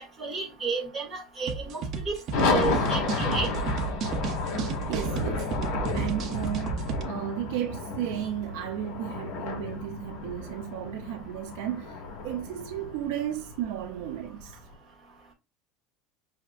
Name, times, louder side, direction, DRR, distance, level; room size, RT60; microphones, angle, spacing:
voice 1, 0.2-2.2 2.5-3.5, right 4 dB, 15° right, 1.9 m, -32 dB
sound 1, 1.5-7.0, right 5 dB, 35° right, 0.7 m, -32 dB
sound 2, 2.3-14.5, left 3 dB, 60° left, 1.3 m, -32 dB
voice 2, 4.9-5.5 5.9-12.0 12.2-14.6, right 11 dB, 70° right, 0.7 m, -34 dB
5.7 x 2.8 x 2.5 m
cardioid pair, 160°, 0 cm